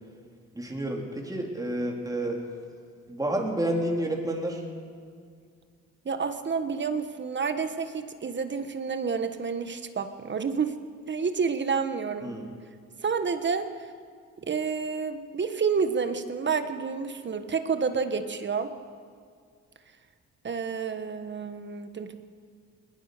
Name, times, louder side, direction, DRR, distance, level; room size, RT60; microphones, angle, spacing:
voice 1, 0.5-2.4 3.1-4.6 12.2-12.5, right 1 dB, 10° right, 0 dB, 3.7 m, -30 dB
voice 2, 6.0-10.8 11.1-12.3 13.0-13.7 14.4-18.7 20.4-22.2, right 5 dB, 40° right, 9 dB, 1.4 m, -29 dB
20.5 x 20.5 x 6.7 m, 2.1 s
cardioid pair, 90°, 30 cm